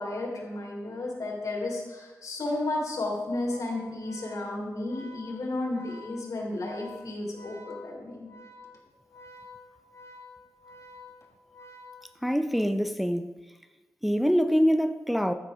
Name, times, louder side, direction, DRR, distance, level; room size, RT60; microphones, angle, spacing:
voice 1, 0.0-8.3, left 2 dB, 80° left, 3.0 m, -33 dB
Organ, 3.3-12.5, left 2 dB, 55° left, 1.6 m, -49 dB
voice 2, 12.2-13.3 14.0-15.3, equal, ahead, 0.5 m, -24 dB
13.5 x 6.4 x 5.0 m
wide cardioid pair, 85°, 6 cm